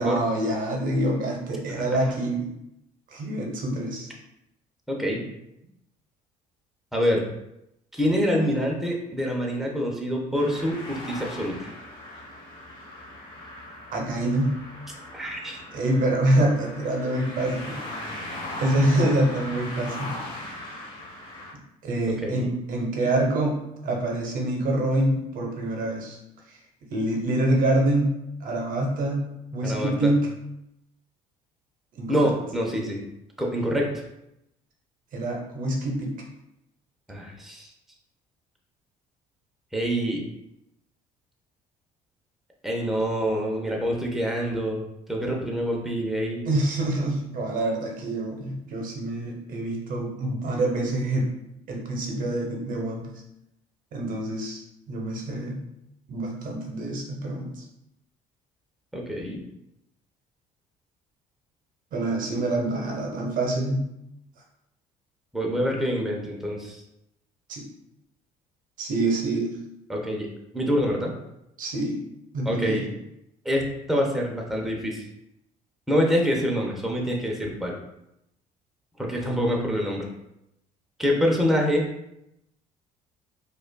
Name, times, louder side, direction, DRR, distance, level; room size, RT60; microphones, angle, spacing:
voice 1, 0.0-2.5 3.1-4.1 13.9-14.6 15.7-18.2 18.6-20.1 21.5-26.2 26.9-30.3 31.9-32.3 35.1-36.1 46.4-51.3 51.7-53.1 53.9-55.6 56.1-57.6 61.9-63.9 67.5-67.7 68.8-69.5 71.6-72.0 72.3-72.8, right 1 dB, 60° right, 0 dB, 0.8 m, -26 dB
voice 2, 4.9-5.2 6.9-7.3 7.9-11.7 15.1-15.6 22.1-22.5 29.6-30.1 32.1-33.0 33.4-34.0 37.1-37.7 39.7-40.3 42.6-44.8 45.1-46.5 58.9-59.4 65.3-66.8 69.9-70.3 70.5-71.1 72.4-72.8 73.4-75.1 75.9-77.8 79.0-80.1 81.0-81.9, equal, ahead, -1 dB, 0.7 m, -26 dB
sound 1, 10.3-21.5, left 1 dB, 35° left, 1.0 m, -39 dB
4.9 x 2.4 x 2.2 m, 0.83 s
supercardioid pair, 85°, 15 cm